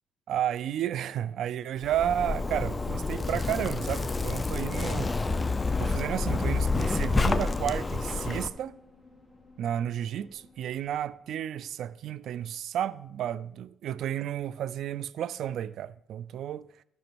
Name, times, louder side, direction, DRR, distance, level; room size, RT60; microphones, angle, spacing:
voice 1, 0.3-5.1 5.8-8.8 9.6-16.7, right 10 dB, 75° right, 0.3 m, -32 dB
Zipper (clothing), 1.8-8.5, left 3 dB, 25° left, 0.6 m, -28 dB
sound 1, 3.6-11.4, left 2 dB, ahead, 1.6 m, -55 dB
10.5 x 5.1 x 6.1 m
cardioid pair, 90°, 0 cm